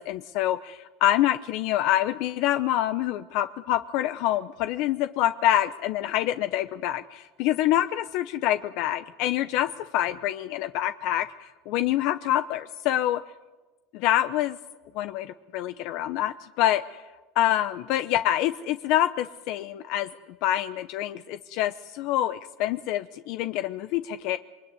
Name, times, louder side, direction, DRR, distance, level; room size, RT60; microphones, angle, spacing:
voice 1, 0.0-9.7 9.9-13.2 13.9-14.6 14.9-17.0 17.3-20.1 20.4-24.4, left 13 dB, 65° left, 11 dB, 0.9 m, -26 dB
27.5 x 22.0 x 9.7 m, 1.2 s
supercardioid pair, 130°, 0 cm